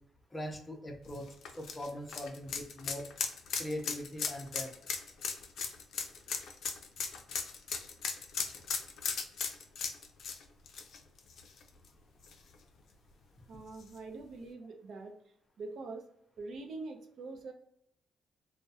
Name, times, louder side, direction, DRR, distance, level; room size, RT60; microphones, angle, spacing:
voice 1, 0.3-1.3 1.6-3.1 3.6-4.7, left 1 dB, 20° left, 3 dB, 0.5 m, -41 dB
sound 1, 1.1-11.9 12.2-12.3 13.8-13.9, left 6 dB, 70° left, 0.4 m, -37 dB
voice 2, 13.5-15.1 15.6-16.0 16.4-17.5, right 3 dB, 65° right, 3 dB, 0.5 m, -44 dB
2.2 x 2.1 x 2.7 m, 0.70 s
cardioid pair, 90°, 0 cm